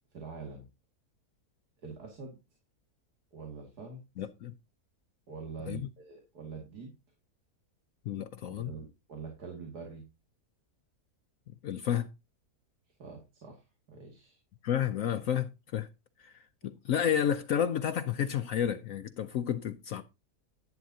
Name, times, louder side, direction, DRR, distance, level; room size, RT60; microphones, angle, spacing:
voice 1, 0.1-0.7 1.8-2.4 3.3-4.0 5.3-6.9 8.5-10.0 13.0-13.6 13.9-14.4, right 5 dB, 85° right, 2.7 m, -44 dB
voice 2, 4.2-4.5 5.7-5.9 8.1-8.7 11.6-12.1 14.6-15.9 16.2-16.3 16.6-20.0, left 9 dB, 65° left, 1.0 m, -31 dB
11.0 x 10.0 x 2.8 m
omnidirectional pair, 1.6 m